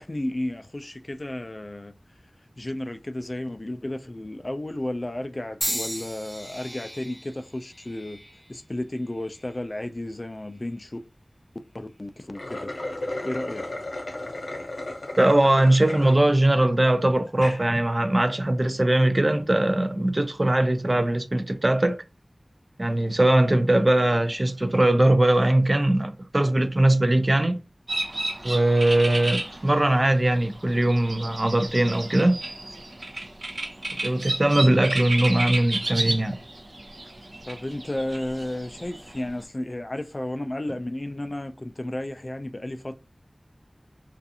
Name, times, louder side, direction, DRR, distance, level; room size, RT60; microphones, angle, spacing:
voice 1, 0.0-1.9 2.6-8.2 8.5-11.0 11.7-12.7 13.2-13.6 37.5-42.9, left 1 dB, 40° left, 0.3 m, -33 dB
sound 1, 5.6-9.7 10.4-10.9 11.8-12.0, equal, 10° left, 0.7 m, -36 dB
sound 2, 12.2-16.2 16.7-16.8 17.3-17.6, left 2 dB, 85° left, 0.7 m, -34 dB
voice 2, 15.2-22.0 22.8-27.6 28.4-32.4 34.0-36.4, right 1 dB, 40° right, 0.3 m, -21 dB
sound 3, 27.9-39.2, right 2 dB, 75° right, 0.6 m, -32 dB
2.4 x 2.4 x 2.7 m
wide cardioid pair, 55°, 0 cm